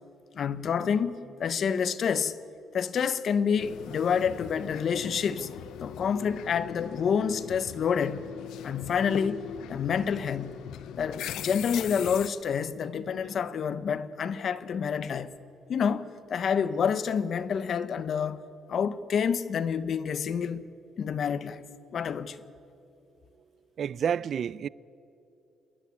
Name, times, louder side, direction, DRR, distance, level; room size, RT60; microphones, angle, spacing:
voice 1, 0.3-1.1 1.4-2.3 2.7-5.5 5.8-8.3 8.6-9.4 9.7-10.7 11.0-15.4 15.7-18.4 18.7-20.6 21.0-21.6 21.9-22.4, left 7 dB, 60° left, 0.9 m, -28 dB
sound 1, 3.6-12.3, left 10 dB, 85° left, 0.7 m, -40 dB
voice 2, 23.8-24.7, right 8 dB, 60° right, 0.4 m, -29 dB
27.0 x 11.0 x 9.5 m
cardioid pair, 90°, 0 cm